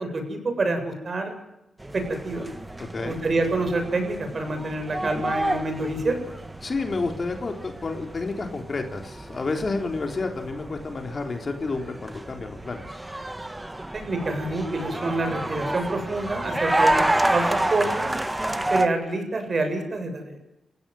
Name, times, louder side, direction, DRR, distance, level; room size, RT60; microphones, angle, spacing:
voice 1, 0.0-1.4 1.9-2.5 3.0-6.2 13.9-18.1 18.7-20.4, right 2 dB, 45° right, 6 dB, 7.3 m, -27 dB
sound 1, 1.8-18.9, right 1 dB, 15° right, 1.9 m, -29 dB
voice 2, 6.6-13.0, left 3 dB, 45° left, 4 dB, 3.8 m, -30 dB
29.5 x 16.5 x 7.9 m, 0.89 s
cardioid pair, 80°, 0 cm